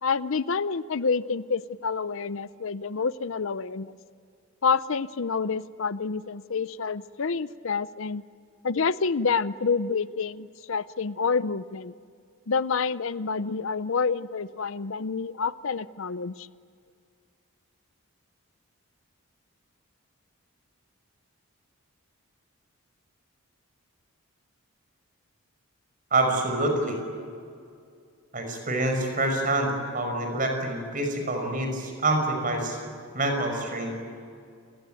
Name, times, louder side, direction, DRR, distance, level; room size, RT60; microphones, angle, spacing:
voice 1, 0.0-4.0 4.6-8.2 8.6-11.9 12.5-16.5, left 5 dB, 60° left, 16 dB, 0.6 m, -28 dB
voice 2, 26.1-27.0 28.3-32.8 33.1-33.9, right 2 dB, 35° right, 4 dB, 5.7 m, -26 dB
29.0 x 21.0 x 9.2 m, 2.3 s
head